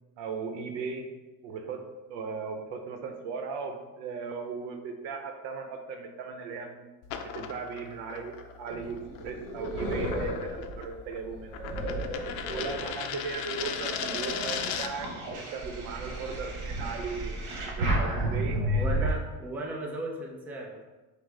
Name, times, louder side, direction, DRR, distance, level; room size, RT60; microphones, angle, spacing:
voice 1, 0.2-1.1 1.4-6.8 7.2-11.6 12.5-19.2, right 5 dB, 80° right, 5 dB, 0.7 m, -37 dB
sound 1, 7.0-15.1, left 8 dB, 75° left, 0.5 m, -38 dB
sound 2, 8.7-12.9 13.5-19.1, right 1 dB, 65° right, 1.0 m, -32 dB
voice 2, 12.4-12.9 18.7-20.8, right 1 dB, 5° right, -1 dB, 0.3 m, -36 dB
5.7 x 2.0 x 3.2 m, 1.2 s
cardioid pair, 130°, 41 cm